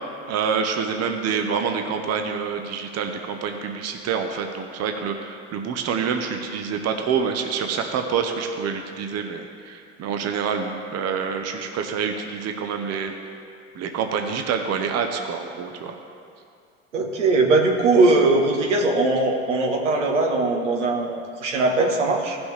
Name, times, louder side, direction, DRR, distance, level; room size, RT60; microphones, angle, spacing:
voice 1, 0.3-13.1 13.7-16.0, right 6 dB, 45° right, 4 dB, 1.0 m, -27 dB
voice 2, 16.9-22.4, right 3 dB, 85° right, 0 dB, 1.3 m, -20 dB
16.0 x 6.2 x 3.3 m, 2.3 s
hypercardioid pair, 65°, 35 cm